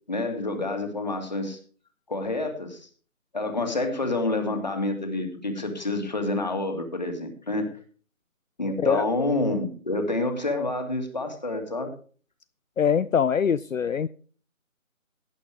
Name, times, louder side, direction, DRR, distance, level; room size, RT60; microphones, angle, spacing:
voice 1, 0.1-1.6 2.1-2.9 3.3-7.7 8.6-11.9, left 2 dB, 30° left, 5 dB, 2.2 m, -28 dB
voice 2, 12.8-14.1, left 7 dB, 70° left, 17 dB, 0.6 m, -23 dB
17.5 x 6.5 x 4.9 m, 0.41 s
figure-of-eight pair, 175°, 41 cm